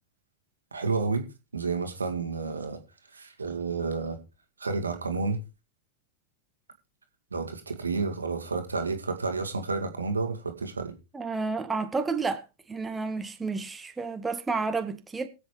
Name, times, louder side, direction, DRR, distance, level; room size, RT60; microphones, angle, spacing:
voice 1, 0.7-1.3 1.5-2.8 3.1-4.2 4.6-5.4 7.3-10.9, right 4 dB, 75° right, 1.9 m, -30 dB
voice 2, 11.1-12.4 12.7-15.3, right 4 dB, 10° right, 1.1 m, -30 dB
22.5 x 8.0 x 3.3 m
figure-of-eight pair, 90°, 0 cm